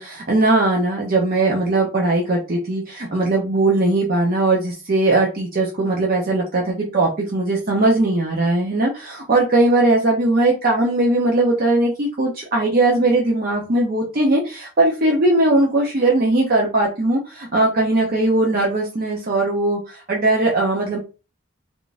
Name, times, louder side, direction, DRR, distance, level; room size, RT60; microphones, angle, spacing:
voice 1, 0.0-21.0, right 2 dB, 45° right, -2 dB, 0.6 m, -19 dB
3.6 x 2.4 x 2.5 m, 0.33 s
head